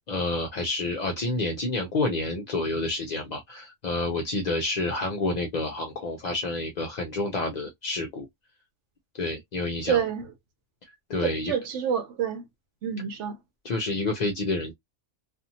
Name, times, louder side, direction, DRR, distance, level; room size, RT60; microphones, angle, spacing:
voice 1, 0.1-8.3 9.1-10.0 11.1-11.5 13.6-14.7, left 2 dB, 55° left, 0.5 m, -29 dB
voice 2, 9.9-10.3 11.2-12.5 12.8-13.4, right 7 dB, 70° right, 1.0 m, -28 dB
2.7 x 2.4 x 2.6 m
omnidirectional pair, 1.3 m